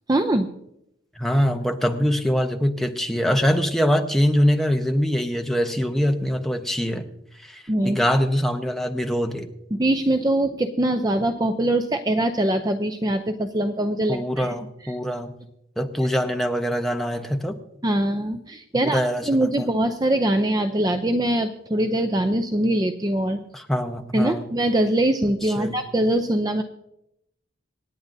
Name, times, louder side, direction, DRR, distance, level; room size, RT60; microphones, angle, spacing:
voice 1, 0.1-0.5 7.7-8.0 9.7-14.5 17.8-23.4 24.1-26.6, right 1 dB, 20° right, 7 dB, 0.5 m, -22 dB
voice 2, 1.2-7.1 7.4-9.5 14.1-15.3 15.8-17.6 18.8-19.7 23.5-24.5 25.4-25.8, equal, ahead, 3 dB, 0.9 m, -23 dB
27.0 x 9.4 x 2.7 m, 0.80 s
head